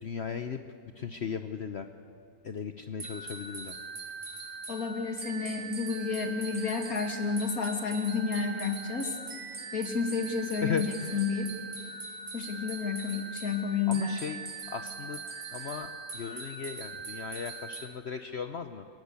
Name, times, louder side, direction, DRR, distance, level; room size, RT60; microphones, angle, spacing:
voice 1, 0.0-0.6 1.0-1.9 2.4-3.8 10.6-11.2 13.9-14.4 14.7-15.2 15.5-18.9, left 6 dB, 50° left, 8 dB, 1.0 m, -36 dB
sound 1, 3.0-17.9, right 4 dB, 50° right, 2.0 m, -41 dB
voice 2, 4.7-9.2 9.7-11.5 12.3-14.3, left 5 dB, 65° left, 4 dB, 2.9 m, -31 dB
29.5 x 17.0 x 8.3 m, 2.6 s
omnidirectional pair, 1.6 m